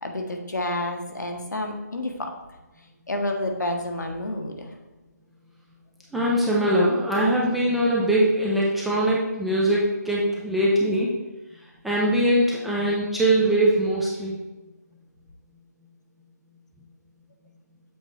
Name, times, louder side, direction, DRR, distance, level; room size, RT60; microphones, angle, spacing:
voice 1, 0.0-2.3 3.1-4.7, left 1 dB, 75° left, 3 dB, 1.1 m, -29 dB
voice 2, 6.1-11.1 11.8-14.4, right 1 dB, ahead, -6 dB, 0.3 m, -22 dB
7.5 x 3.8 x 3.3 m, 1.1 s
figure-of-eight pair, 155°, 10 cm